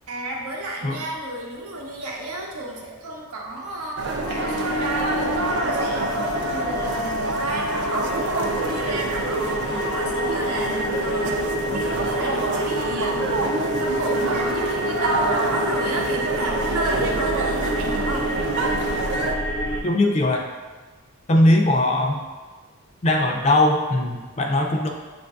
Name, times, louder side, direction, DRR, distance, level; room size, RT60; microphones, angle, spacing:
voice 1, 0.1-18.3, right 1 dB, 90° right, -1 dB, 0.8 m, -31 dB
sound 1, 4.0-19.4, right 3 dB, 55° right, 0.4 m, -27 dB
sound 2, 4.2-19.8, left 1 dB, 75° left, 0.7 m, -28 dB
voice 2, 19.8-20.5 21.3-22.2 23.0-24.9, left 1 dB, 30° left, 1 dB, 0.4 m, -19 dB
7.3 x 2.5 x 2.3 m, 1.3 s
head